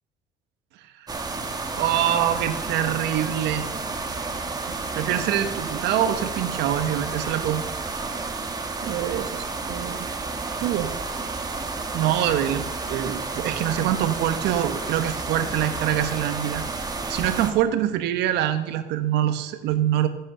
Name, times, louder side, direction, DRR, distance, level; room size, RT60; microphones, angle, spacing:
sound 1, 1.1-17.5, right 3 dB, 20° right, 2.0 m, -31 dB
voice 1, 1.7-3.7 4.6-7.6 8.8-9.3 9.7-10.1 10.6-11.0 11.9-16.6 17.1-20.1, right 11 dB, 90° right, 10 dB, 1.3 m, -25 dB
15.0 x 8.5 x 6.8 m, 1.1 s
cardioid pair, 110°, 17 cm